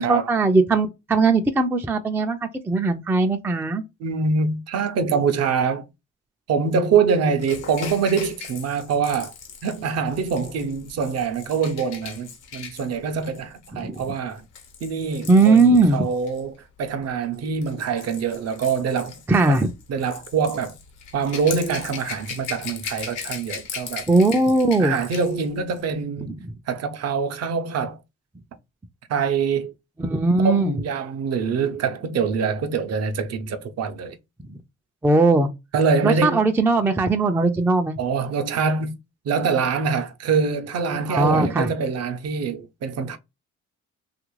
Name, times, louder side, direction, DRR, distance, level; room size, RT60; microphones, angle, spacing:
voice 1, 0.0-3.8 13.7-14.0 15.3-16.1 19.3-19.7 24.1-25.0 30.0-30.8 35.0-35.5 36.0-38.0 41.1-41.7, right 3 dB, 10° right, 0.3 m, -19 dB
voice 2, 4.0-5.9 6.5-9.3 9.6-14.4 14.8-19.2 19.5-19.6 19.9-20.7 21.1-24.1 24.8-26.3 26.7-28.0 29.1-29.7 30.4-34.2 35.7-36.5 38.0-39.0 39.2-43.2, right 5 dB, 55° right, 0.6 m, -24 dB
Rattle / Rattle (instrument), 7.4-16.4 17.3-25.4 25.7-25.9, left 6 dB, 90° left, 1.0 m, -38 dB
2.9 x 2.5 x 3.0 m
cardioid pair, 90°, 30 cm